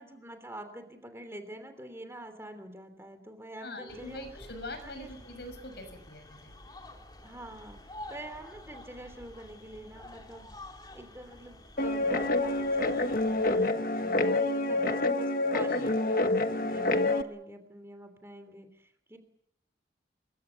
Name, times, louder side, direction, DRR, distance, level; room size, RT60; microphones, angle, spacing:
voice 1, 0.0-4.3 4.8-5.1 7.2-10.5 10.9-19.2, right 1 dB, 15° right, 8 dB, 3.1 m, -46 dB
voice 2, 3.6-6.6 15.7-15.9, left 1 dB, 65° left, 9 dB, 6.3 m, -43 dB
sound 1, 3.9-13.7, left 1 dB, 25° left, 3.1 m, -49 dB
Guitar, 11.8-17.2, left 2 dB, 50° left, 1.3 m, -27 dB
26.0 x 23.0 x 7.0 m, 0.71 s
head